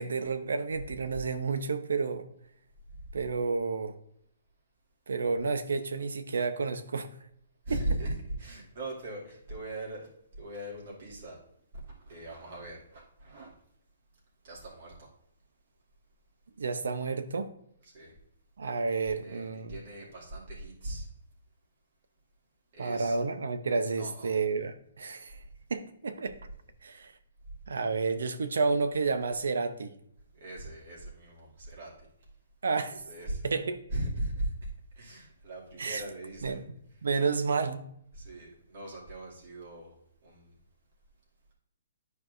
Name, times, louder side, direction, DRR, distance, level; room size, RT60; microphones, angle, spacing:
voice 1, 0.0-2.3 3.1-4.0 5.1-7.1 7.7-7.8 16.6-17.5 18.6-19.8 22.8-25.4 25.7-26.4 26.8-27.1 27.7-30.0 32.6-33.0 33.4-33.8 35.8-36.0 36.4-36.6 37.0-37.8, right 4 dB, 90° right, 10 dB, 0.7 m, -30 dB
voice 2, 7.7-8.1 8.4-10.1 10.4-11.4 11.9-13.5 14.4-15.1 17.9-18.1 19.0-21.1 22.7-23.2 24.0-24.3 26.8-26.9 30.3-31.9 33.1-33.4 33.9-34.7 35.0-36.6 38.1-39.9 40.2-40.5, right 1 dB, 50° right, -3 dB, 2.4 m, -39 dB
11.0 x 4.6 x 2.6 m, 0.71 s
hypercardioid pair, 165°, 0 cm